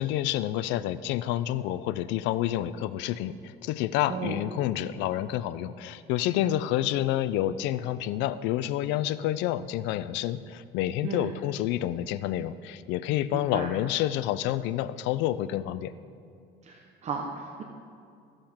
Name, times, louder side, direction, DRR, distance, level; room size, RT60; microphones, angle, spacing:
voice 1, 0.0-15.9, left 13 dB, 85° left, 15 dB, 0.5 m, -29 dB
voice 2, 13.3-13.7 16.6-17.6, right 5 dB, 40° right, 2 dB, 0.8 m, -35 dB
14.0 x 7.6 x 4.4 m, 2.5 s
cardioid pair, 135°, 18 cm